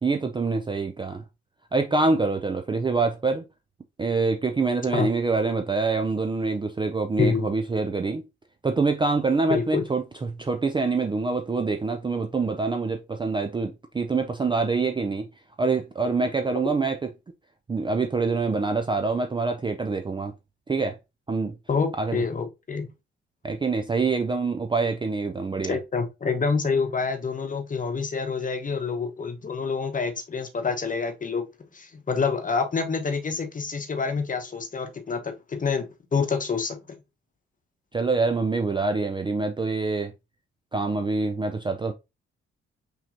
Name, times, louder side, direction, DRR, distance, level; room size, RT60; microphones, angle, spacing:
voice 1, 0.0-1.2 1.7-3.4 4.0-8.2 8.6-15.3 15.6-17.0 17.7-20.3 20.7-21.0 21.3-21.5 22.0-22.2 23.4-25.8 37.9-40.1 40.7-41.9, right 3 dB, 15° right, 0.5 m, -25 dB
voice 2, 9.5-9.8 21.7-22.9 25.7-31.5 31.7-36.8, left 5 dB, 25° left, 1.0 m, -27 dB
5.6 x 3.1 x 2.6 m
figure-of-eight pair, 45°, 33 cm